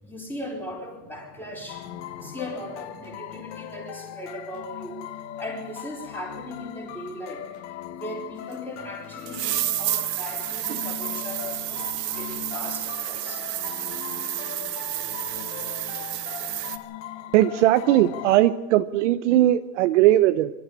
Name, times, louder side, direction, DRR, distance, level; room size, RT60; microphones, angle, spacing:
voice 1, 0.0-5.0 5.4-7.6 7.9-13.5, left 1 dB, 5° left, -1 dB, 4.6 m, -38 dB
sound 1, 1.7-18.4, left 10 dB, 40° left, 1.3 m, -39 dB
sound 2, 8.5-8.6 9.2-16.8, right 13 dB, 90° right, 1.8 m, -30 dB
voice 2, 17.3-20.5, right 14 dB, 50° right, 11 dB, 0.8 m, -19 dB
25.5 x 13.0 x 8.6 m, 1.1 s
supercardioid pair, 170°, 47 cm